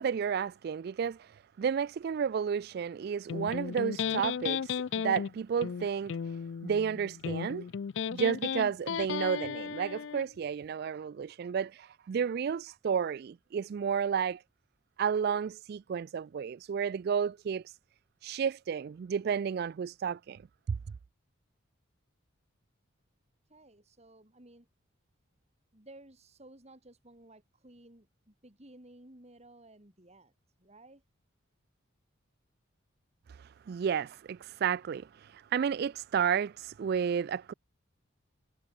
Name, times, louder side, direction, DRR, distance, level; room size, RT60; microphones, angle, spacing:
voice 1, 0.0-7.7 8.1-14.4 15.0-17.8 18.2-20.4 20.7-20.8 33.3-37.5, right 7 dB, 50° right, 0.3 m, -32 dB
Electric guitar, 3.3-10.3, left 7 dB, 60° left, 0.4 m, -35 dB
voice 2, 23.5-24.7 25.7-30.3 30.6-31.0, right 1 dB, 35° right, 3.5 m, -55 dB
head